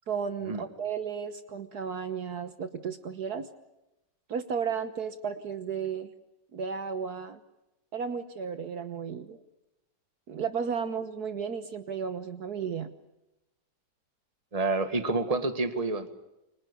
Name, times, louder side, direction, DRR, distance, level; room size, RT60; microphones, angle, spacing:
voice 1, 0.1-3.5 4.3-6.1 6.5-7.4 7.9-9.4 10.3-12.9, right 6 dB, 65° right, 10 dB, 1.7 m, -34 dB
voice 2, 14.5-16.1, right 3 dB, 20° right, 9 dB, 1.9 m, -28 dB
29.5 x 24.5 x 6.9 m, 0.94 s
omnidirectional pair, 1.9 m